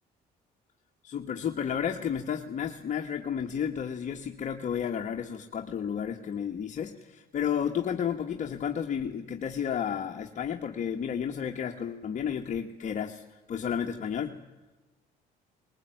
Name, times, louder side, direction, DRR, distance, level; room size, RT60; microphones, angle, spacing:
voice 1, 1.0-14.4, left 8 dB, 45° left, 3 dB, 1.4 m, -32 dB
20.5 x 19.5 x 9.1 m, 1.1 s
cardioid pair, 110°, 17 cm